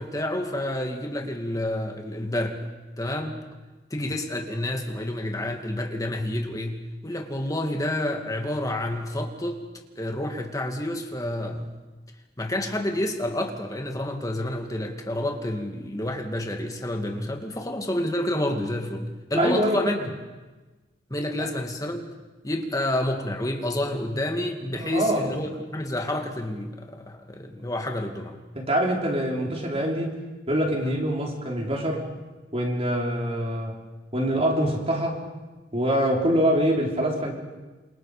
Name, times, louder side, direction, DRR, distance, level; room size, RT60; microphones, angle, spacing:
voice 1, 0.0-2.6 3.0-3.4 3.9-9.6 10.0-11.7 12.4-20.1 21.1-22.1 22.4-28.4 30.8-31.0, left 1 dB, 20° left, 3 dB, 2.5 m, -29 dB
voice 2, 19.4-19.8 21.4-21.5 24.8-25.3 28.6-30.1 30.5-32.0 32.5-33.7 34.1-35.2 35.7-37.3, equal, 35° right, 0 dB, 4.1 m, -24 dB
28.5 x 27.5 x 5.1 m, 1.2 s
head